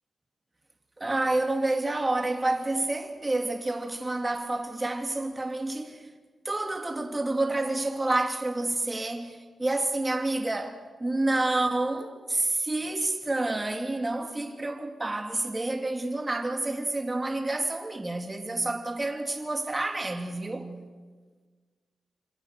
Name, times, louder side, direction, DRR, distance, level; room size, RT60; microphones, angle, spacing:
voice 1, 1.0-6.1 6.4-20.7, right 2 dB, 20° right, 3.0 m, -29 dB
27.5 x 26.0 x 6.8 m
cardioid pair, 95°, 0 cm